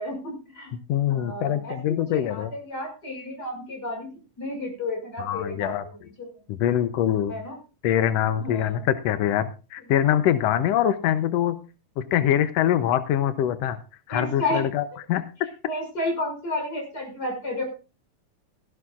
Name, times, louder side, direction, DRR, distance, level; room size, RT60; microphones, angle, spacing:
voice 1, 0.0-0.8 1.1-4.1 4.4-6.3 6.6-6.8 7.3-7.6 8.4-8.8 14.1-14.7 15.7-17.6, left 1 dB, 30° left, 2 dB, 6.7 m, -32 dB
voice 2, 0.9-2.5 5.2-5.8 6.5-7.4 7.8-11.5 12.0-13.8 14.1-15.2, left 11 dB, 80° left, 11 dB, 1.5 m, -24 dB
17.5 x 15.5 x 2.4 m, 0.32 s
omnidirectional pair, 3.7 m